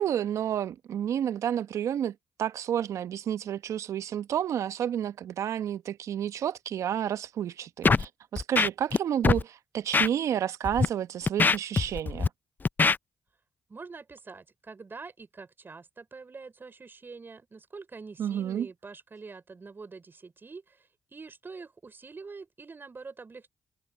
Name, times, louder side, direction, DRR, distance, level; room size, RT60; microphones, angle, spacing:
voice 1, 0.0-12.3 18.2-18.7, right 10 dB, 70° right, 1.0 m, -30 dB
Scratching (performance technique), 7.8-8.1 8.4-9.0 9.2-9.4 9.9-10.1 10.6-10.9 11.3-12.3 12.7-13.0, left 4 dB, 35° left, 0.5 m, -22 dB
voice 2, 13.7-23.5, right 4 dB, 40° right, 5.7 m, -45 dB
hypercardioid pair, 45°, 5 cm